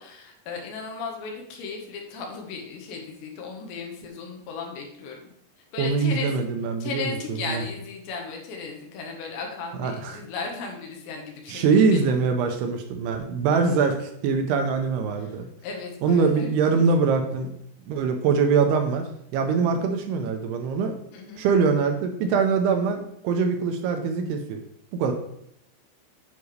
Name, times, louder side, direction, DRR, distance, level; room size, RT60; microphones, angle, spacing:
voice 1, 0.0-5.3 5.7-6.4 6.8-12.0 13.5-13.6 15.2-15.4 15.6-16.8 21.1-21.5, left 4 dB, 85° left, 2 dB, 3.5 m, -36 dB
voice 2, 5.8-7.1 7.5-7.6 9.8-10.2 11.5-15.5 16.0-17.5 17.9-20.9 21.4-24.6 24.9-25.1, right 5 dB, 80° right, 5 dB, 2.5 m, -23 dB
9.4 x 5.9 x 3.2 m, 0.73 s
omnidirectional pair, 5.0 m